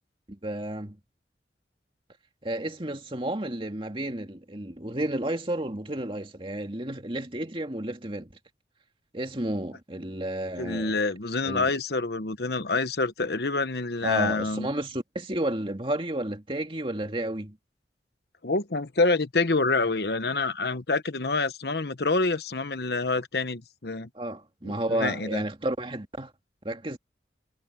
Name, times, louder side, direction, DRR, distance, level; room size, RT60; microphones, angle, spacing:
voice 1, 0.3-1.0 2.4-8.3 9.1-11.0 11.4-11.7 14.0-17.6 24.1-26.3 26.6-27.0, right 1 dB, 30° right, 2.2 m, -31 dB
voice 2, 10.6-14.7 18.4-24.1 24.6-25.4, left 3 dB, 60° left, 1.1 m, -27 dB
head